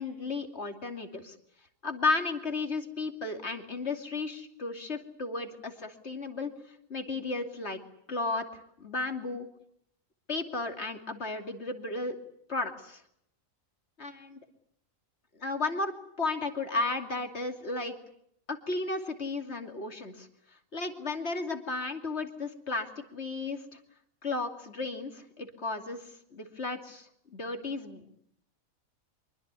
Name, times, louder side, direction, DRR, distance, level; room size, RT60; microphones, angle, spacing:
voice 1, 0.0-1.3 1.8-6.5 6.9-7.8 8.1-9.5 10.3-12.2 12.5-13.0 14.0-14.4 15.4-18.0 18.5-20.3 20.7-23.8 24.2-28.2, left 3 dB, 50° left, 5 dB, 3.0 m, -34 dB
25.0 x 23.5 x 8.3 m, 0.72 s
omnidirectional pair, 1.4 m